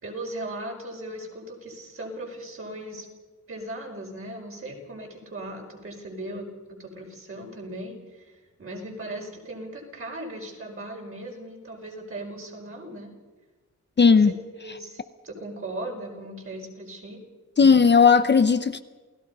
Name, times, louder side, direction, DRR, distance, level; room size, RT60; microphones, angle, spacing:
voice 1, 0.0-3.1 3.5-13.1 14.1-17.2, right 1 dB, 45° right, 5.4 m, -38 dB
voice 2, 14.0-14.3 17.6-18.8, left 5 dB, 35° left, 0.7 m, -16 dB
28.5 x 17.5 x 5.5 m
wide cardioid pair, 130°, 32 cm